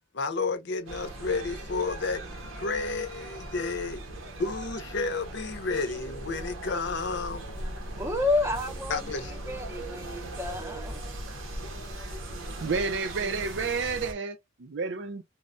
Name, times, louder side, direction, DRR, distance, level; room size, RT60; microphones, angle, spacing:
voice 1, 0.1-2.2 2.6-4.0 4.4-7.5 8.9-9.4, left 4 dB, 60° left, 0.6 m, -31 dB
sound 1, 0.9-14.1, right 1 dB, 85° right, 0.8 m, -39 dB
voice 2, 8.0-9.0 9.5-11.0, left 2 dB, 15° right, 0.6 m, -30 dB
voice 3, 12.6-15.2, right 4 dB, 60° right, 0.4 m, -30 dB
3.1 x 2.1 x 2.4 m
head